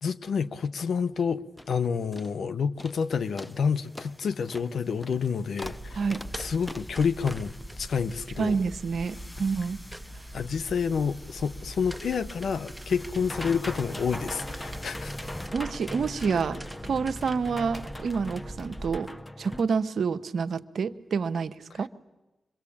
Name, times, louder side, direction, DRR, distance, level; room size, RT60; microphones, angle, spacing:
voice 1, 0.0-6.0 6.4-8.5 10.3-15.1, left 6 dB, 75° left, 1.0 m, -29 dB
sound 1, 1.2-1.3 1.6-1.8 2.1-2.4 2.8-3.0 3.4-19.6, left 1 dB, 15° left, 1.1 m, -42 dB
sound 2, 5.6-19.0, right 1 dB, ahead, 2.0 m, -42 dB
voice 2, 8.4-9.8 15.5-19.1 19.4-21.9, right 5 dB, 70° right, 1.0 m, -28 dB
26.5 x 23.0 x 8.7 m
supercardioid pair, 40°, 0 cm